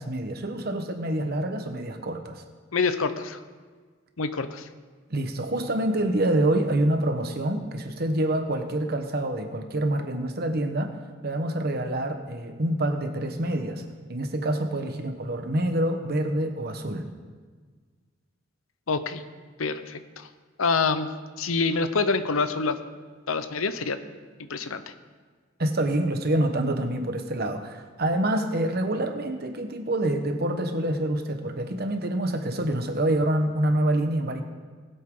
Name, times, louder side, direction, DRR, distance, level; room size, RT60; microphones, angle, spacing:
voice 1, 0.0-2.4 5.1-10.9 11.2-13.8 14.1-17.1 25.6-34.4, right 1 dB, 50° right, 6 dB, 1.1 m, -26 dB
voice 2, 2.7-3.4 4.2-4.7 18.9-19.2 19.6-20.3 20.6-21.1 21.4-22.8 23.3-24.0 24.5-24.8, left 4 dB, 85° left, 11 dB, 0.8 m, -26 dB
19.5 x 8.1 x 3.8 m, 1.5 s
head